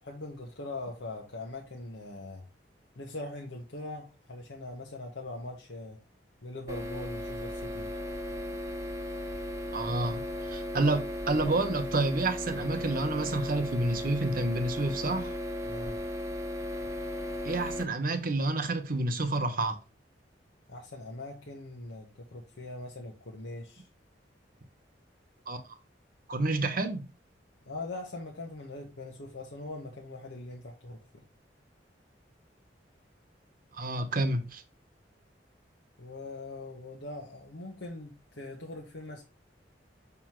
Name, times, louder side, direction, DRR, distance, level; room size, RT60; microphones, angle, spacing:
voice 1, 0.0-2.5 3.0-6.0 6.4-7.9 15.7-16.0 20.7-23.9 27.6-31.2 36.0-39.2, left 2 dB, 85° left, 1.2 m, -41 dB
sound 1, 6.7-17.8, left 1 dB, 15° right, 0.8 m, -36 dB
voice 2, 9.7-10.2 10.5-15.4 17.4-19.8 25.5-25.6 26.3-27.1 33.7-34.6, right 2 dB, 50° right, 1.0 m, -29 dB
6.1 x 5.6 x 3.0 m
head